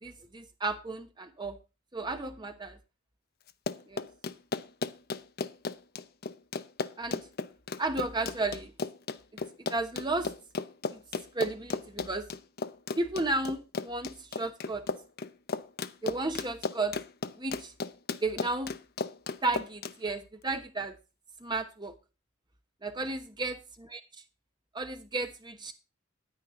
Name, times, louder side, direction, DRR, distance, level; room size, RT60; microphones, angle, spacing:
voice 1, 0.0-1.6 1.9-2.8 3.9-4.1 7.0-7.2 7.8-8.7 9.7-10.3 10.9-11.0 11.3-12.3 13.0-14.8 16.0-17.0 17.4-17.7 18.2-18.7 19.4-20.9 21.4-21.9 22.8-24.0 24.7-25.7, right 2 dB, 20° right, 7 dB, 1.1 m, -33 dB
Run, 3.5-19.9, left 4 dB, 50° left, 0.7 m, -35 dB
10.5 x 9.8 x 3.8 m, 0.30 s
head